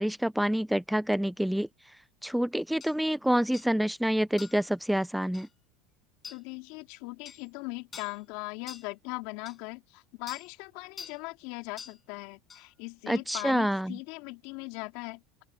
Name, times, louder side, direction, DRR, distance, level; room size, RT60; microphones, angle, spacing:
voice 1, 0.0-1.7 2.2-5.5 13.1-14.0, equal, ahead, 0.4 m, -27 dB
sound 1, 2.8-2.9 3.5-3.7 4.4-4.7 5.3-5.5 6.2-6.4 7.2-7.4 7.9-8.2 8.7-8.9 9.4-9.6 10.3-10.5 11.0-11.2 11.8-12.0 12.5-12.6, left 6 dB, 20° left, 5.4 m, -45 dB
voice 2, 6.3-15.4, left 25 dB, 65° left, 3.9 m, -40 dB
open air
cardioid pair, 150°, 0 cm